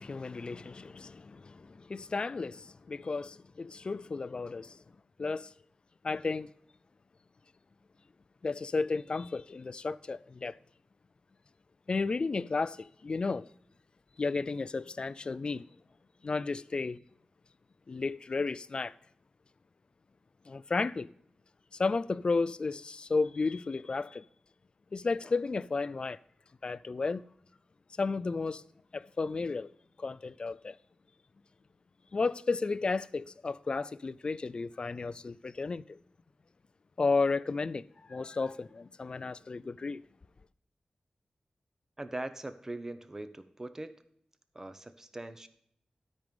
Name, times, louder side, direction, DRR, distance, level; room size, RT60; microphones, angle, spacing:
voice 1, 0.0-4.8 5.2-5.5 6.0-6.5 8.4-10.6 11.9-13.5 14.2-15.7 16.2-17.0 17.9-18.9 20.5-21.1 21.7-24.2 24.9-26.2 26.6-27.2 28.0-28.6 28.9-29.7 30.0-30.8 32.1-36.0 37.0-40.0, left 4 dB, 40° left, 0.3 m, -33 dB
voice 2, 42.0-43.9 44.5-45.5, right 2 dB, 20° right, 0.7 m, -41 dB
13.0 x 5.3 x 5.2 m
wide cardioid pair, 110°, 2 cm